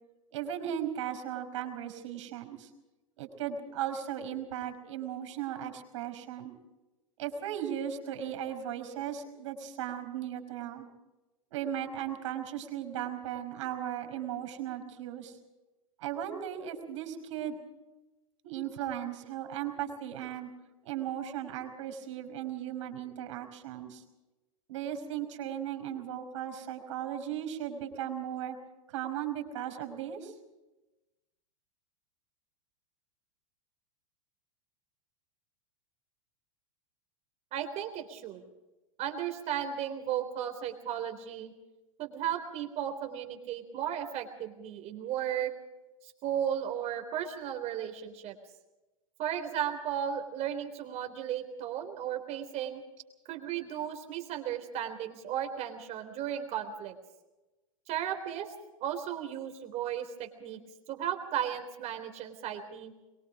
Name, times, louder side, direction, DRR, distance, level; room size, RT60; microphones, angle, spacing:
voice 1, 0.3-2.7 3.2-6.5 7.2-10.9 11.5-15.4 16.0-17.6 18.4-20.5 20.8-24.0 24.7-28.6 28.9-30.3, right 10 dB, 60° right, 6 dB, 5.2 m, -37 dB
voice 2, 37.5-38.4 39.0-41.5 42.0-45.5 46.0-48.4 49.2-52.8 53.3-56.9 57.9-58.5 58.8-60.6 60.9-62.9, right 9 dB, 40° right, 6 dB, 3.8 m, -35 dB
23.5 x 23.0 x 5.1 m, 1.1 s
figure-of-eight pair, 95°, 18 cm